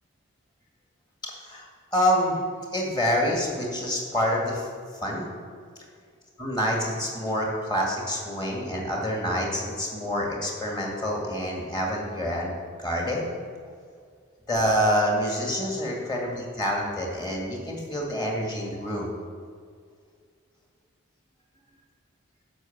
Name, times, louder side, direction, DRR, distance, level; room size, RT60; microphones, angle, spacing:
voice 1, 1.2-1.7 1.9-2.4 2.7-4.7 5.0-5.3 6.4-12.5 12.8-13.2 14.5-19.1, equal, 20° left, -1 dB, 2.1 m, -27 dB
11.0 x 5.7 x 7.3 m, 2.1 s
head